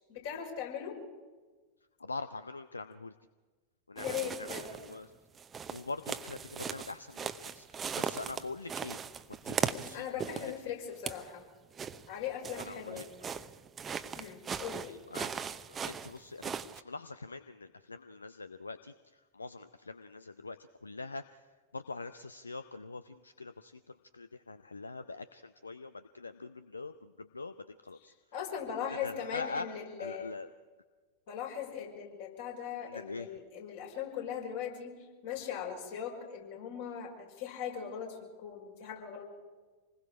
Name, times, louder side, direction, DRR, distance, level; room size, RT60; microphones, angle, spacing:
voice 1, 0.1-0.9 3.9-4.6 9.6-11.4 12.1-13.1 14.2-14.9 28.3-30.4 31.3-39.2, left 8 dB, 55° left, 0 dB, 5.7 m, -39 dB
voice 2, 2.0-3.1 3.9-5.1 5.7-9.0 9.4-10.1 10.3-10.5 12.6-13.0 14.7-18.9 19.3-21.4 21.7-28.1 28.6-29.7 30.0-30.5 32.8-33.3, left 3 dB, 80° left, 12 dB, 0.6 m, -44 dB
sound 1, 4.0-5.0 5.4-10.6 10.9-11.3 11.8-16.8, right 6 dB, 20° right, 0.8 m, -38 dB
27.5 x 20.5 x 4.9 m, 1.3 s
figure-of-eight pair, 90°, 0 cm